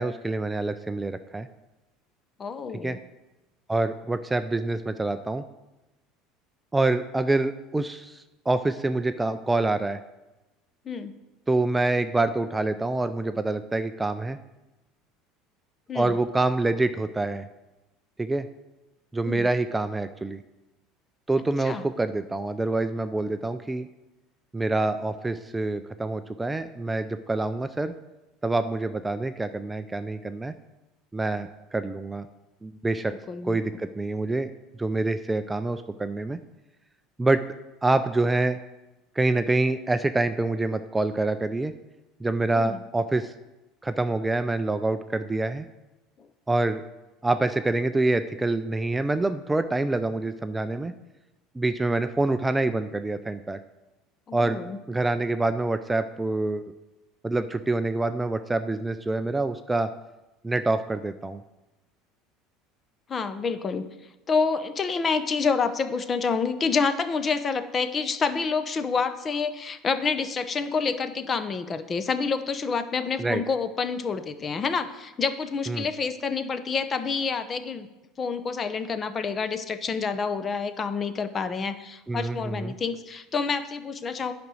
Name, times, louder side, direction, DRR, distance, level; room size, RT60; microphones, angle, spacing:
voice 1, 0.0-1.5 2.8-3.0 3.7-5.4 6.7-10.0 11.5-14.4 15.9-17.4 18.2-18.5 19.1-20.4 21.3-23.9 24.5-27.9 28.4-30.5 31.1-32.3 32.6-33.1 33.4-34.5 34.8-36.4 37.2-37.4 37.8-38.6 39.2-41.7 42.2-43.3 43.8-45.7 46.5-46.8 47.2-50.9 51.6-53.6 54.3-54.6 54.9-56.6 57.2-59.9 60.4-61.4 73.2-73.4 75.7-75.9 82.1-82.7, right 2 dB, 10° right, 10 dB, 0.4 m, -26 dB
voice 2, 2.4-3.0 10.9-11.1 15.9-16.2 19.3-19.5 21.6-21.8 33.0-33.6 42.6-42.8 46.2-46.3 54.3-54.8 63.1-63.9 64.3-77.9 78.2-84.3, left 5 dB, 30° left, 11 dB, 0.7 m, -28 dB
9.3 x 5.1 x 6.2 m, 1.0 s
supercardioid pair, 110°, 0 cm